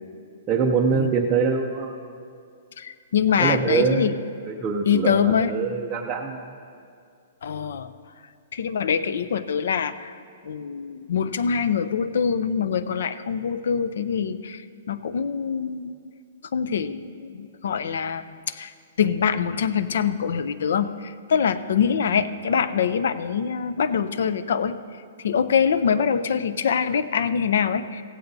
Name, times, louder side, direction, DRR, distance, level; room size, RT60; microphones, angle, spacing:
voice 1, 0.5-1.9 3.4-4.2 4.5-6.5, right 5 dB, 15° right, -2 dB, 0.5 m, -24 dB
voice 2, 2.8-4.1 4.9-5.5 7.4-7.9 8.5-10.1 10.4-14.6 14.9-15.9 16.5-18.7 19.0-24.8 25.2-28.0, left 7 dB, 60° left, 14 dB, 0.5 m, -24 dB
16.0 x 15.5 x 2.7 m, 2.3 s
hypercardioid pair, 180°, 0 cm